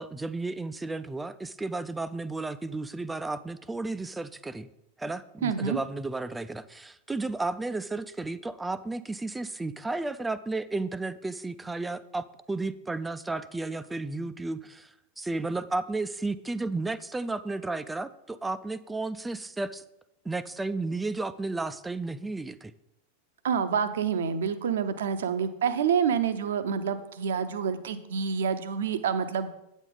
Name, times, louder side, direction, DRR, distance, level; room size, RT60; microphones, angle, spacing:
voice 1, 0.0-4.7 5.0-19.8 20.2-22.7, right 3 dB, 10° right, 14 dB, 0.4 m, -33 dB
voice 2, 5.4-5.8 23.4-29.5, right 7 dB, 60° right, 11 dB, 0.7 m, -27 dB
8.8 x 7.2 x 3.9 m, 0.85 s
figure-of-eight pair, 90°, 0 cm